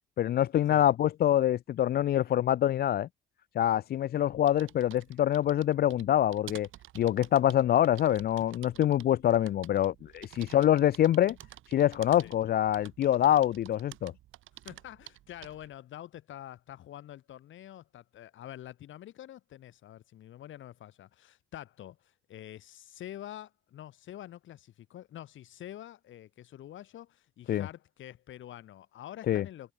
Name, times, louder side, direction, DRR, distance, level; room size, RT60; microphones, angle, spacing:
voice 1, 0.2-3.1 3.6-6.7 6.9-11.4 11.7-14.1 27.5-27.7 29.3-29.5, left 11 dB, 50° left, 0.4 m, -25 dB
sound 1, 4.2-15.7, right 14 dB, 85° right, 6.3 m, -52 dB
voice 2, 14.6-29.7, left 12 dB, 75° left, 5.9 m, -46 dB
cardioid pair, 90°, 20 cm